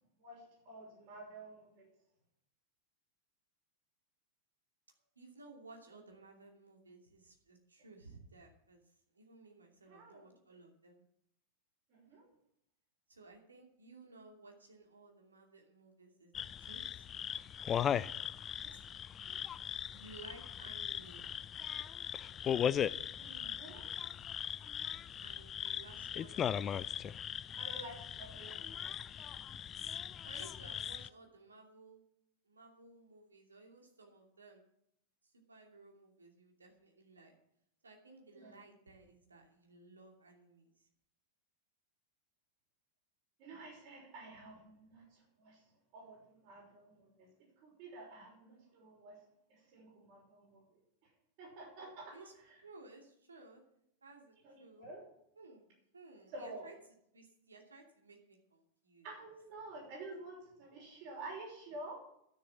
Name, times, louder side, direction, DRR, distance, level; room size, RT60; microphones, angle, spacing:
voice 1, 0.2-1.9 9.9-10.3 11.9-12.3 18.6-18.8 23.2-23.9 27.6-28.9 38.3-38.6 43.4-45.6 45.9-47.3 47.6-49.2 49.5-50.8 51.4-52.2 54.4-55.0 56.3-56.7 59.0-62.0, right 2 dB, 45° right, -1 dB, 5.8 m, -50 dB
voice 2, 5.2-8.8 9.1-11.0 13.1-16.3 16.6-17.1 18.7-18.8 19.9-21.3 25.2-26.8 30.2-32.0 32.4-34.6 35.2-37.3 37.8-40.9 52.1-52.3 52.6-53.6 54.0-54.9 55.4-56.7 57.1-59.1, right 3 dB, 75° right, 1 dB, 2.7 m, -57 dB
sound 1, 16.3-31.1, left 9 dB, 25° left, 0.4 m, -39 dB
12.0 x 7.0 x 9.0 m, 0.75 s
figure-of-eight pair, 90°, 0 cm